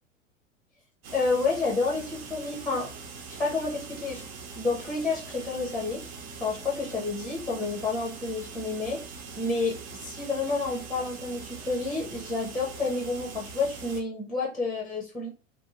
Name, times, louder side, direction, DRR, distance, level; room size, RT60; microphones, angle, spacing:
sound 1, 1.0-14.0, right 5 dB, 30° right, 0.6 m, -42 dB
voice 1, 1.1-2.9 3.4-4.2 4.5-6.0 6.4-9.0 9.4-15.3, left 3 dB, ahead, -2 dB, 0.8 m, -29 dB
3.4 x 2.3 x 3.1 m, 0.34 s
figure-of-eight pair, 85°, 38 cm